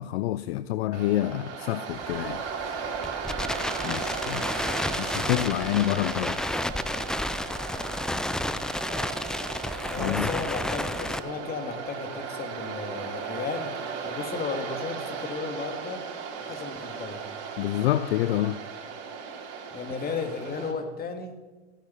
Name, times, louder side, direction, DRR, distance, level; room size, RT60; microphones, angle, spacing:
voice 1, 0.0-2.4 3.8-6.4 10.0-10.3 17.6-18.6, left 14 dB, 60° left, 0.6 m, -28 dB
Waves surf, 0.9-20.7, right 5 dB, 45° right, 3.7 m, -36 dB
Crackle, 1.9-11.2, left 1 dB, ahead, 0.4 m, -31 dB
voice 2, 9.9-13.7 14.0-16.0 16.4-17.3 19.7-21.4, left 5 dB, 25° left, 2.3 m, -34 dB
15.5 x 10.0 x 7.0 m
hypercardioid pair, 95°, 35 cm